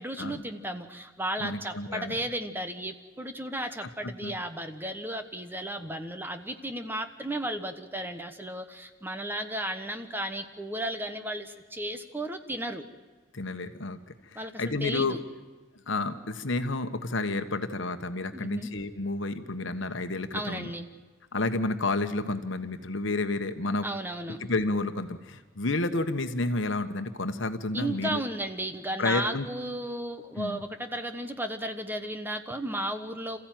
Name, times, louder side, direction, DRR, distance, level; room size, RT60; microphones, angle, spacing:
voice 1, 0.0-12.9 14.3-15.2 18.3-18.7 20.3-20.9 23.8-24.4 27.7-33.4, right 1 dB, 10° right, 8 dB, 1.2 m, -34 dB
voice 2, 1.4-2.2 4.0-4.3 13.3-15.2 15.9-20.7 21.3-23.9 24.3-28.2 29.0-29.5 30.4-30.6, left 2 dB, 65° left, 9 dB, 1.3 m, -30 dB
27.5 x 15.0 x 9.3 m, 1.3 s
head